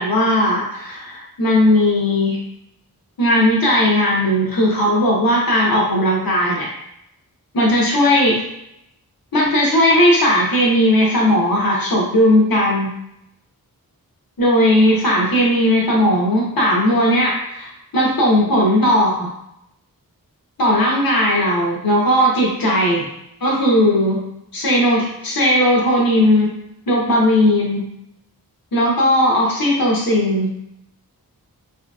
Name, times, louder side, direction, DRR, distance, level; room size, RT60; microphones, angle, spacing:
voice 1, 0.0-2.4 3.2-6.7 7.5-8.4 9.3-12.9 14.4-17.7 17.9-19.3 20.6-23.1 23.4-24.2 24.5-26.5 26.9-27.8 28.7-30.5, left 1 dB, 65° left, -3 dB, 0.9 m, -16 dB
3.0 x 2.7 x 2.3 m, 0.80 s
wide cardioid pair, 40°, 37 cm